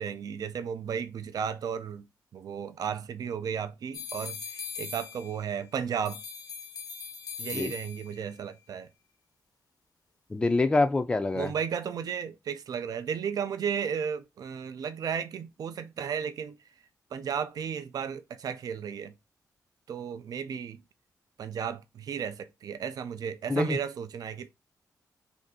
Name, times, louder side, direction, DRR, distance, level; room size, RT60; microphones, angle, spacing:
voice 1, 0.0-2.1 2.3-6.2 7.4-8.9 11.3-16.6 17.1-19.1 19.9-20.8 21.4-24.5, right 7 dB, 65° right, 0.4 m, -34 dB
sound 1, 3.9-5.6 6.0-8.3, left 6 dB, 75° left, 0.6 m, -40 dB
voice 2, 10.3-11.5 23.5-23.8, left 2 dB, 15° left, 0.3 m, -25 dB
2.6 x 2.4 x 3.6 m
wide cardioid pair, 125°, 7 cm